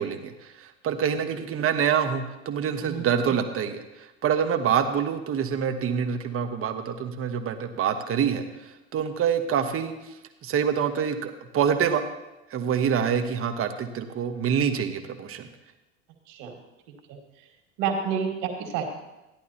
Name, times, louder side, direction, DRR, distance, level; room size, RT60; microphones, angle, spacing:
voice 1, 0.0-9.9 10.4-12.0 12.5-15.5, right 7 dB, 35° right, 7 dB, 1.1 m, -26 dB
voice 2, 17.8-18.9, right 7 dB, 60° right, 2 dB, 2.2 m, -29 dB
15.0 x 10.5 x 2.9 m, 1.0 s
hypercardioid pair, 75°, 37 cm